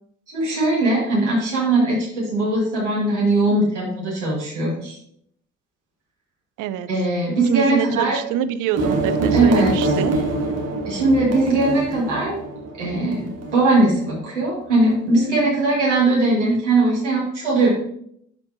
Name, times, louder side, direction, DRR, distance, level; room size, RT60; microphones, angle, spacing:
voice 1, 0.3-5.0 6.9-8.2 9.3-9.7 10.9-12.4 12.8-17.7, right 2 dB, 90° right, -6 dB, 2.2 m, -20 dB
voice 2, 6.6-6.9 7.4-10.1, right 10 dB, 60° right, 12 dB, 0.6 m, -25 dB
sound 1, 8.8-14.2, right 2 dB, 45° right, 1.5 m, -25 dB
11.5 x 4.4 x 2.7 m, 0.70 s
hypercardioid pair, 45°, 35 cm